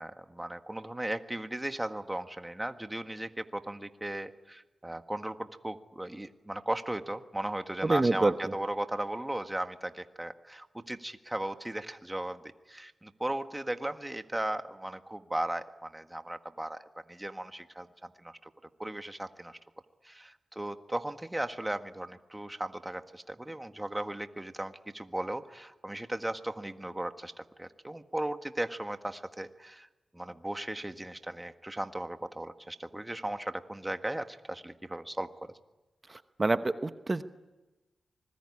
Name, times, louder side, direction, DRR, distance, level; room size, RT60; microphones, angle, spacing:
voice 1, 0.0-18.5 18.8-19.6 20.0-29.9 30.1-35.3, right 1 dB, 15° right, 8 dB, 1.7 m, -37 dB
voice 2, 7.8-8.5 36.1-37.2, right 2 dB, 30° right, 11 dB, 1.0 m, -27 dB
25.5 x 21.0 x 9.9 m, 1.1 s
cardioid pair, 55°, 0 cm